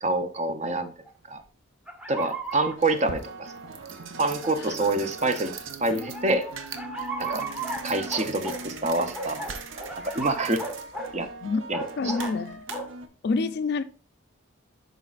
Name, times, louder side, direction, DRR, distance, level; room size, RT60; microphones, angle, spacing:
voice 1, 0.0-0.9 1.3-1.4 2.1-3.5 4.2-5.5 5.8-6.4 7.2-7.5 7.8-9.4 9.7-10.6 11.1-11.3 11.7-12.1, right 2 dB, 35° right, 0.6 m, -27 dB
sound 1, 1.1-1.2 1.9-2.8 3.6-3.7 4.4-4.5 6.0-8.6 9.1-11.2 11.7-12.3 12.7-12.9, right 2 dB, 5° right, 0.8 m, -35 dB
sound 2, 1.4-1.5 2.2-13.1, right 4 dB, 85° right, 0.7 m, -40 dB
voice 2, 12.0-12.7 13.2-13.8, left 4 dB, 60° left, 0.4 m, -28 dB
10.5 x 4.0 x 2.4 m
head